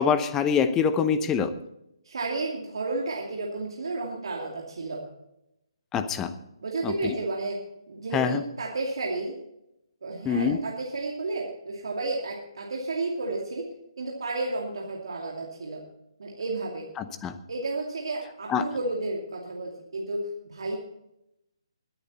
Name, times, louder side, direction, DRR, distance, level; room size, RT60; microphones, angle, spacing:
voice 1, 0.0-1.5 5.9-6.3 6.8-6.9 8.1-8.4 10.2-10.6 17.0-17.3 18.5-18.7, left 6 dB, 15° left, 11 dB, 0.8 m, -24 dB
voice 2, 2.0-5.0 6.6-7.6 7.9-9.4 10.0-13.7 14.0-15.8 16.2-16.9 17.5-20.8, right 2 dB, 65° right, -2 dB, 2.5 m, -32 dB
21.5 x 8.9 x 4.2 m, 0.85 s
figure-of-eight pair, 140°, 3 cm